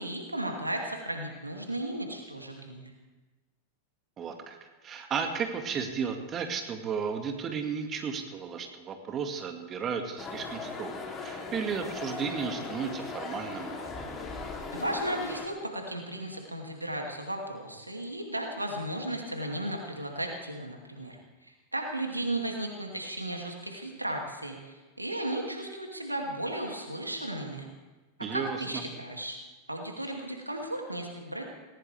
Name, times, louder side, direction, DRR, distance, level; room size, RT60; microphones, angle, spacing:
voice 1, 0.0-2.9 14.7-21.2 21.5-27.7 28.3-29.4 29.7-31.4, right 1 dB, 85° right, 2 dB, 2.5 m, -35 dB
voice 2, 4.2-4.6 4.8-13.8 28.2-28.8, right 6 dB, 25° right, 5 dB, 2.1 m, -34 dB
sound 1, 10.2-15.5, left 4 dB, 25° left, 3.1 m, -38 dB
19.5 x 19.0 x 3.5 m, 1.2 s
figure-of-eight pair, 90°, 0 cm